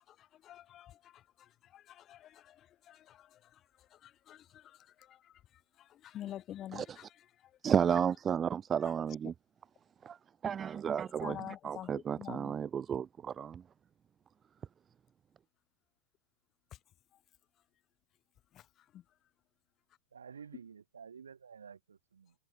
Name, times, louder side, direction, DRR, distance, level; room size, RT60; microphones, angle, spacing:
voice 1, 0.1-3.6 3.9-5.3 5.8-7.3 11.2-12.6 18.5-18.6 18.9-19.0, left 12 dB, 30° left, 3.3 m, -48 dB
voice 2, 7.6-9.3 10.0-10.2 10.4-13.6, right 8 dB, 20° right, 1.2 m, -32 dB
voice 3, 20.1-22.3, right 6 dB, 70° right, 6.2 m, -51 dB
figure-of-eight pair, 90°, 0 cm